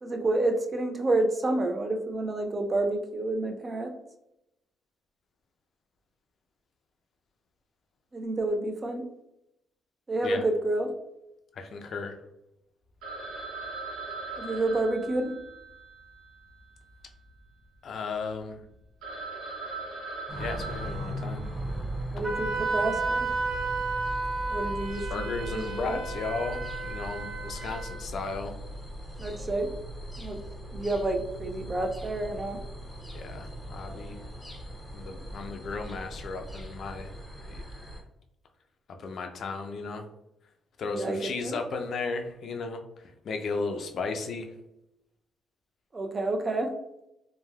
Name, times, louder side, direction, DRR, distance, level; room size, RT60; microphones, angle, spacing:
voice 1, 0.0-3.9 8.1-9.0 10.1-10.9 14.4-15.3 22.1-23.3 24.5-25.1 25.5-26.0 29.2-29.7 30.2-30.4 30.7-32.6 40.9-41.6 45.9-46.7, right 2 dB, 30° right, 4 dB, 0.4 m, -29 dB
voice 2, 11.5-12.2 17.8-18.7 20.4-21.5 25.1-28.6 33.1-34.2 34.9-37.6 38.9-40.0 40.8-44.5, left 4 dB, 60° left, 5 dB, 0.4 m, -35 dB
Telephone, 13.0-17.4 17.6-17.7 18.3-18.4 18.7-18.8 19.0-22.0, right 3 dB, 85° right, 0.9 m, -40 dB
sound 1, 20.3-38.0, equal, 10° left, 0.6 m, -39 dB
Wind instrument woodwind instrument, 22.2-28.0, right 3 dB, 60° right, 1.4 m, -32 dB
3.2 x 2.2 x 2.2 m, 0.86 s
cardioid pair, 90°, 0 cm